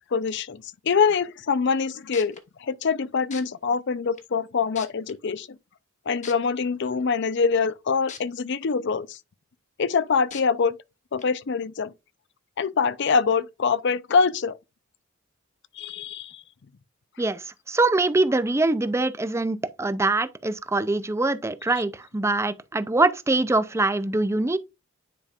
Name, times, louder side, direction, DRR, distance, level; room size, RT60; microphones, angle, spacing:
voice 1, 0.1-5.5 6.1-9.2 9.8-10.8 11.1-11.9 12.6-14.6 15.8-16.4, left 5 dB, 60° left, 0.5 m, -24 dB
sound 1, 1.8-1.9 2.1-2.4 3.3-3.4 4.2-4.3 4.7-5.1 6.2-6.3 8.1-8.2 8.7-8.8 10.3-10.4 11.2-11.3, left 6 dB, 35° left, 1.1 m, -39 dB
voice 2, 17.2-24.6, right 2 dB, 15° right, 0.5 m, -23 dB
9.8 x 5.1 x 2.4 m
head